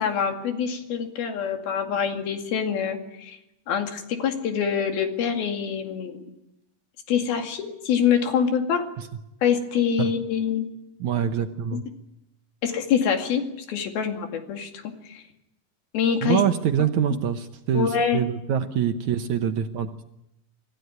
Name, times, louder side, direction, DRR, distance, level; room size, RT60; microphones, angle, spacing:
voice 1, 0.0-3.4 3.7-6.2 7.1-8.9 9.4-10.7 11.7-11.8 12.6-14.7 15.1-15.2 15.9-16.4 17.7-18.2, left 7 dB, 80° left, 4 dB, 4.2 m, -25 dB
voice 2, 11.0-11.8 16.2-20.1, right 9 dB, 70° right, 7 dB, 2.0 m, -25 dB
26.0 x 16.0 x 9.4 m, 0.88 s
omnidirectional pair, 4.2 m